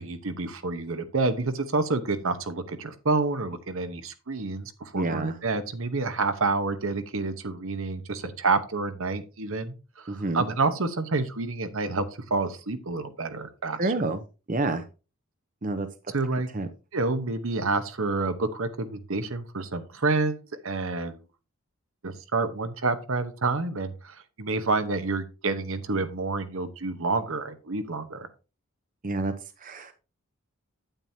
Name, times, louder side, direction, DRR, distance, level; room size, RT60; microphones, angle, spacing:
voice 1, 0.0-13.9 16.1-16.5 16.9-21.2 22.0-28.3, right 3 dB, 65° right, 10 dB, 0.9 m, -28 dB
voice 2, 4.9-5.3 10.1-10.4 13.8-14.2 14.5-14.8 15.6-15.9 16.5-16.7 29.0-29.3 29.6-29.9, right 2 dB, 35° right, 9 dB, 0.7 m, -28 dB
9.0 x 8.8 x 2.8 m, 0.31 s
head